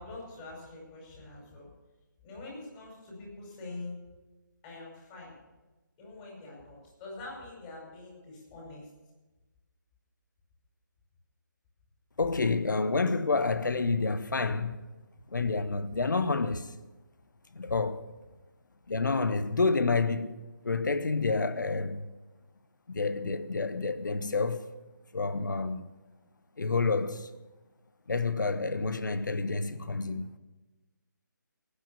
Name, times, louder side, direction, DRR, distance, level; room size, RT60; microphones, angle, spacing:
voice 1, 0.0-1.7 2.2-4.0 4.6-5.3 6.0-8.9, left 2 dB, 20° left, 5.5 m, -44 dB
voice 2, 12.2-14.8 15.3-16.7 17.5-18.1 18.9-20.3 20.6-22.1 22.9-24.7 25.1-25.9 26.6-27.3 28.1-30.3, left 3 dB, 65° left, 1.0 m, -29 dB
18.5 x 8.2 x 6.9 m
figure-of-eight pair, 150°, 11 cm